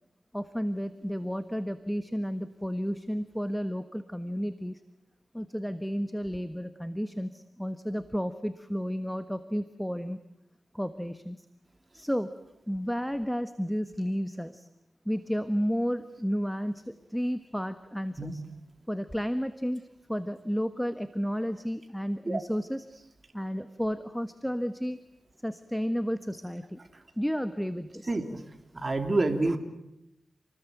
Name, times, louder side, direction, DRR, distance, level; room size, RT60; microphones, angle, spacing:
voice 1, 0.3-4.8 5.3-10.2 10.7-11.4 11.9-12.3 12.7-14.7 15.0-18.4 18.9-22.9 23.3-25.0 25.4-26.8 27.2-28.1, equal, ahead, 11 dB, 1.4 m, -32 dB
voice 2, 28.7-29.6, right 2 dB, 35° right, 6 dB, 3.2 m, -27 dB
29.0 x 20.0 x 9.3 m, 0.88 s
cardioid pair, 75°, 0 cm